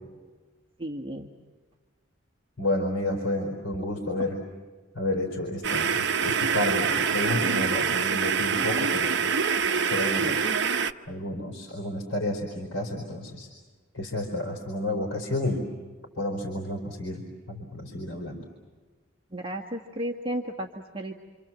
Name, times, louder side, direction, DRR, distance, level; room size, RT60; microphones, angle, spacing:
voice 1, 0.8-1.3 19.3-21.1, right 1 dB, 25° right, -2 dB, 1.7 m, -33 dB
voice 2, 2.6-4.4 4.9-9.3 9.8-10.4 11.1-13.5 13.9-15.7 16.2-18.4, left 1 dB, 75° left, 1 dB, 4.5 m, -31 dB
sound 1, 5.6-10.9, right 6 dB, 55° right, 0.9 m, -25 dB
27.5 x 27.5 x 7.6 m, 1.4 s
head